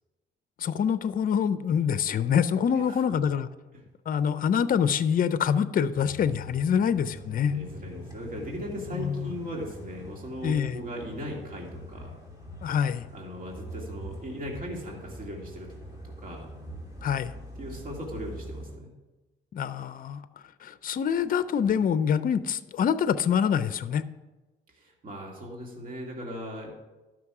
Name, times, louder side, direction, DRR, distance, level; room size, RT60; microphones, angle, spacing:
voice 1, 0.6-3.5 4.1-7.5 8.9-9.3 10.4-10.8 12.6-13.1 17.0-17.3 19.5-20.2 20.6-24.0, left 7 dB, 45° left, 13 dB, 0.5 m, -25 dB
sound 1, 5.9-18.8, left 1 dB, 20° right, 3.1 m, -43 dB
voice 2, 7.4-12.1 13.1-15.7 16.0-16.5 17.6-18.9 24.7-26.8, equal, 45° right, -1 dB, 2.4 m, -38 dB
12.0 x 6.1 x 4.8 m, 1.1 s
cardioid pair, 90°, 20 cm